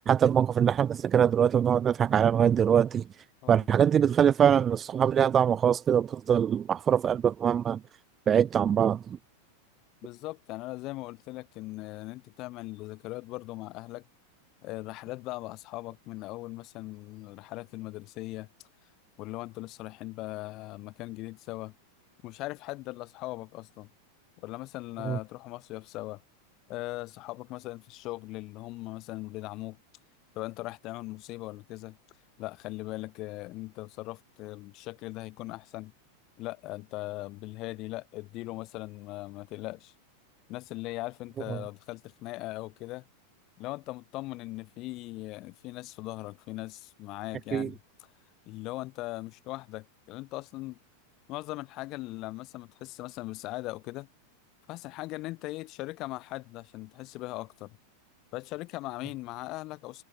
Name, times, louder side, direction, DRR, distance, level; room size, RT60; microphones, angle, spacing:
voice 1, 0.1-3.0 3.5-7.8 8.3-9.2 25.1-25.2 47.5-47.7, right 8 dB, 25° right, 0.3 m, -23 dB
voice 2, 10.0-14.0 14.6-18.5 19.2-21.7 22.2-23.9 24.4-26.2 26.7-29.8 30.3-32.0 32.4-35.9 36.4-39.9 40.5-43.1 43.6-48.1 48.5-50.8 51.3-54.1 54.7-57.8 58.3-60.0, left 19 dB, 40° left, 7.7 m, -39 dB
figure-of-eight pair, 90°, 0 cm